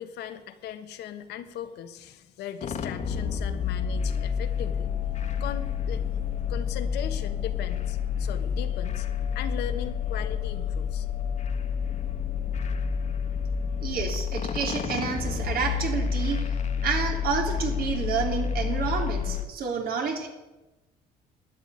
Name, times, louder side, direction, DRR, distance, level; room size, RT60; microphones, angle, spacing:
voice 1, 0.0-4.9 5.4-6.0 6.5-9.1 9.3-11.1, left 10 dB, 80° left, 8 dB, 1.4 m, -38 dB
sound 1, 2.6-19.5, left 7 dB, 45° left, 1.5 m, -29 dB
voice 2, 13.8-16.4 16.8-20.3, right 6 dB, 60° right, 3 dB, 3.4 m, -29 dB
12.5 x 9.3 x 9.4 m, 1.1 s
cardioid pair, 110°, 17 cm